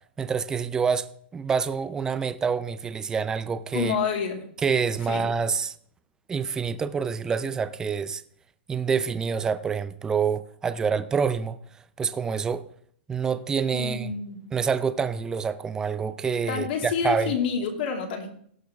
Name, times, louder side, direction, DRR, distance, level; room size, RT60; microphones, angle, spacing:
voice 1, 0.2-1.1 1.3-4.0 4.6-5.8 6.3-8.2 8.7-11.6 12.0-12.7 13.1-14.1 14.5-17.3, right 6 dB, 10° right, 0.4 m, -27 dB
voice 2, 3.7-4.4 5.1-5.2 13.7-14.4 16.5-18.3, left 6 dB, 55° left, 2.2 m, -28 dB
17.5 x 6.0 x 3.4 m
hypercardioid pair, 155°, 6 cm